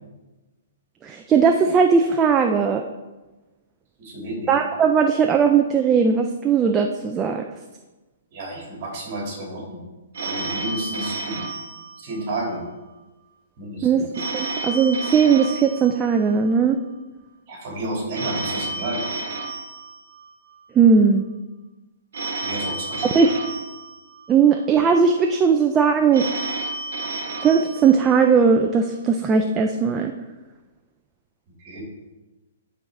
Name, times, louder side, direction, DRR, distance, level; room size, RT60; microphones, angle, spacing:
voice 1, 1.0-2.8 4.5-7.5 13.8-14.1 14.3-16.8 20.8-21.2 23.1-23.3 24.3-26.3 27.4-30.1, right 6 dB, 10° right, 4 dB, 0.3 m, -18 dB
voice 2, 4.0-4.6 8.3-9.8 10.2-11.4 12.0-12.6 13.6-14.0 17.5-19.0 22.4-23.1 31.6-31.8, right 1 dB, 35° right, -2 dB, 2.9 m, -31 dB
Telephone, 10.1-12.6 14.1-16.6 18.1-20.6 22.1-24.6 26.1-28.6, right 3 dB, 65° right, 1.2 m, -32 dB
11.5 x 4.6 x 3.7 m, 1.1 s
hypercardioid pair, 170°, 0 cm